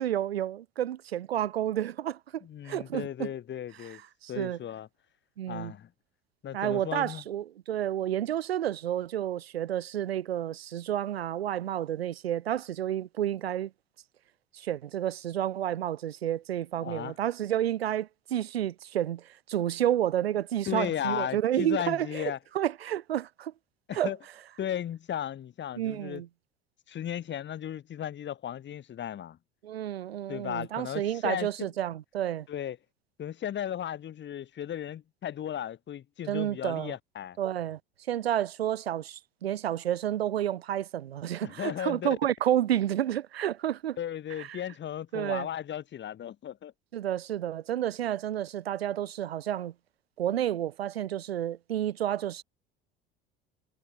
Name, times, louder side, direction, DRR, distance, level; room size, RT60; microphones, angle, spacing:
voice 1, 0.0-3.3 4.2-4.6 5.4-5.7 6.5-13.7 14.5-22.2 22.5-23.5 23.9-24.1 25.8-26.3 29.6-32.5 36.3-36.9 37.4-37.8 38.1-44.0 44.4-44.6 45.1-45.5 46.9-49.7 50.2-52.4, right 11 dB, 90° right, 0.6 m, -30 dB
voice 2, 2.4-4.0 4.3-4.9 5.5-5.9 6.4-7.2 16.7-17.1 20.7-22.4 23.9-24.2 24.6-26.2 26.9-29.4 30.3-31.7 32.5-32.8 33.2-37.4 41.4-42.1 44.0-46.7, left 10 dB, 40° left, 1.5 m, -35 dB
hypercardioid pair, 70°, 30 cm